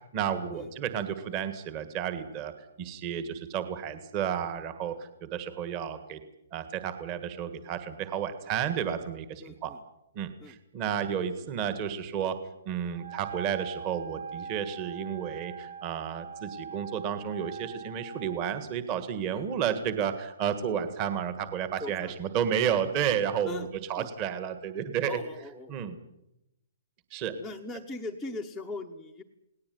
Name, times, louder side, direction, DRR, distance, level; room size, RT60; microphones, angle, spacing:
voice 1, 0.1-2.5 2.8-6.2 6.5-9.7 10.1-12.4 12.6-25.2 25.7-26.0 27.1-27.4, right 8 dB, 20° right, 11 dB, 1.7 m, -32 dB
voice 2, 9.4-9.8 10.4-10.6 19.3-19.5 21.8-22.4 23.4-23.7 24.0-24.1 25.1-25.8 27.4-29.2, left 2 dB, ahead, 6 dB, 1.1 m, -40 dB
Wind instrument woodwind instrument, 12.9-18.5, right 6 dB, 55° right, 3.9 m, -42 dB
29.0 x 19.0 x 9.4 m, 0.87 s
hypercardioid pair, 180°, 0 cm